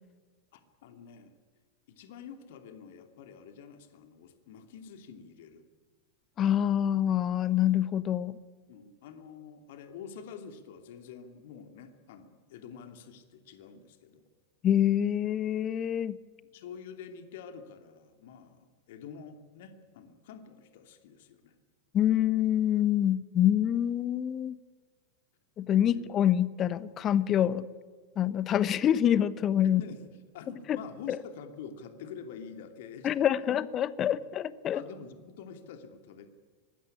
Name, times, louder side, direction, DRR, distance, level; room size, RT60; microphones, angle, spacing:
voice 1, 0.5-1.3 1.9-5.6 8.7-14.2 16.5-21.5 25.9-26.0 29.8-33.5 34.2-34.3 34.7-36.3, left 6 dB, 55° left, 7 dB, 2.8 m, -47 dB
voice 2, 6.4-8.4 14.6-16.2 21.9-24.6 25.6-27.7 28.2-29.8 30.7-30.8 31.1-31.2 33.0-34.8, left 10 dB, 30° left, 17 dB, 1.0 m, -26 dB
24.5 x 20.0 x 9.9 m, 1.5 s
figure-of-eight pair, 90°, 0 cm